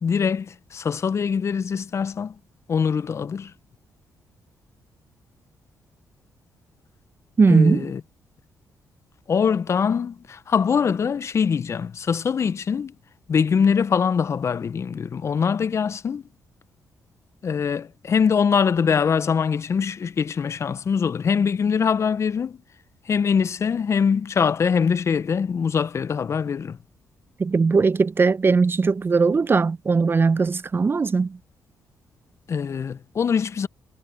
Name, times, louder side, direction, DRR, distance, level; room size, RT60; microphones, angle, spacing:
voice 1, 0.0-2.3 2.7-3.5 7.5-8.0 9.3-12.9 13.3-16.2 17.4-22.6 23.1-26.8 32.5-33.7, left 6 dB, 50° left, 0.9 m, -23 dB
voice 2, 7.4-7.9 27.4-31.4, right 4 dB, 40° right, 0.8 m, -19 dB
supercardioid pair, 50°, 6 cm